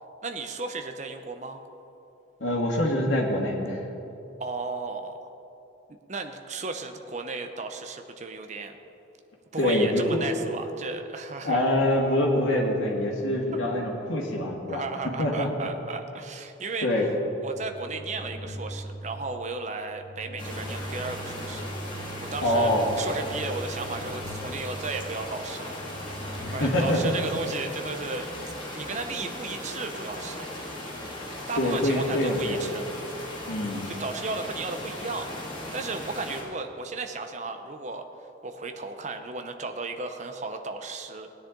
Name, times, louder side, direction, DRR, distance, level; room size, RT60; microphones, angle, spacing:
voice 1, 0.2-1.6 4.4-5.3 6.1-8.8 9.5-11.6 14.7-16.9 17.4-22.7 23.0-25.8 26.5-28.3 28.7-30.5 31.5-32.8 33.8-35.3 35.7-38.0 38.4-41.3, right 3 dB, 40° right, 6 dB, 0.7 m, -35 dB
voice 2, 2.4-3.8 9.6-10.3 11.4-14.8 15.2-15.5 16.8-17.1 22.4-22.9 26.5-27.2 31.6-32.6 33.5-33.9, left 1 dB, 85° left, -2 dB, 2.0 m, -25 dB
sound 1, 17.1-27.7, right 1 dB, 40° left, 1.5 m, -40 dB
sound 2, 20.4-36.4, left 1 dB, 25° left, 2.4 m, -38 dB
16.5 x 10.0 x 3.8 m, 2.9 s
head